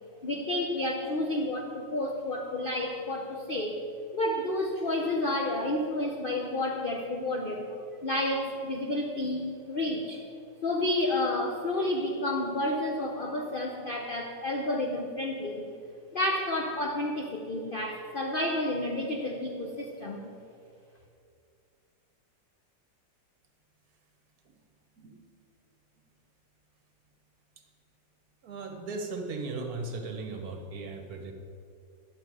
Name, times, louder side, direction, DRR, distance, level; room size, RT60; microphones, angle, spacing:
voice 1, 0.2-3.8 4.1-7.7 8.0-10.2 10.6-15.7 16.1-20.3, left 1 dB, 70° left, 1 dB, 0.5 m, -30 dB
voice 2, 28.4-31.3, right 3 dB, 60° right, 4 dB, 1.3 m, -37 dB
10.5 x 6.8 x 4.8 m, 2.4 s
omnidirectional pair, 2.0 m